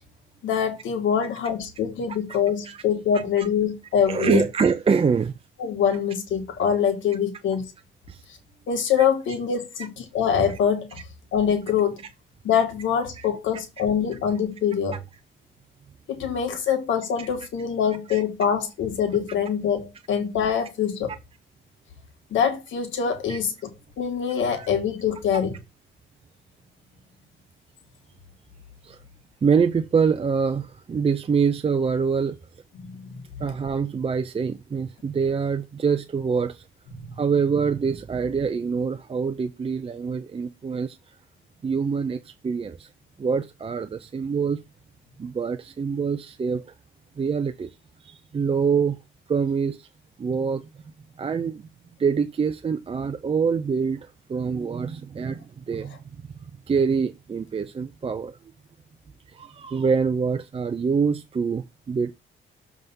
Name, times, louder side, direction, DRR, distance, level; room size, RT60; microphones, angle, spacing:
voice 1, 0.4-4.4 5.6-7.7 8.7-11.0 11.3-12.0 12.4-15.0 16.1-21.1 22.3-23.7 24.0-25.6 32.7-33.2 36.9-37.2, left 7 dB, 75° left, 1.6 m, -24 dB
voice 2, 4.1-5.4 8.1-8.2 13.2-13.3 14.9-15.0 17.2-17.3 18.1-18.2 23.3-23.4 24.5-24.7 28.8-29.0 29.4-32.4 33.4-36.6 37.1-41.0 41.6-42.9 43.2-44.6 45.2-46.6 47.2-49.0 49.3-49.9 50.2-50.7 51.2-51.7 52.0-56.0 56.7-58.4 59.3-62.1, right 5 dB, 30° right, 0.5 m, -25 dB
6.9 x 3.6 x 5.3 m
cardioid pair, 90°, 20 cm